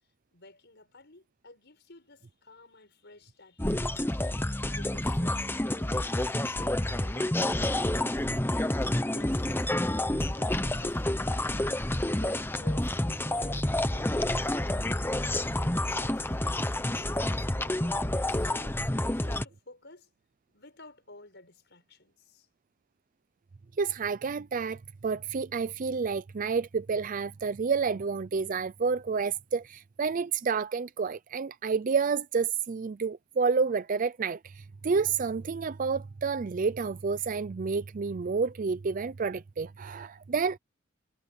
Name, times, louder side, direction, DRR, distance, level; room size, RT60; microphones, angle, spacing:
voice 1, 0.3-4.1 4.6-8.1 9.1-11.6 12.1-15.1 15.9-16.3 16.7-18.0 18.2-20.1 20.5-22.5, left 2 dB, 55° left, 7.0 m, -52 dB
sound 1, 3.6-19.5, left 1 dB, 10° left, 0.9 m, -29 dB
voice 2, 23.8-40.6, right 5 dB, 40° right, 0.4 m, -29 dB
head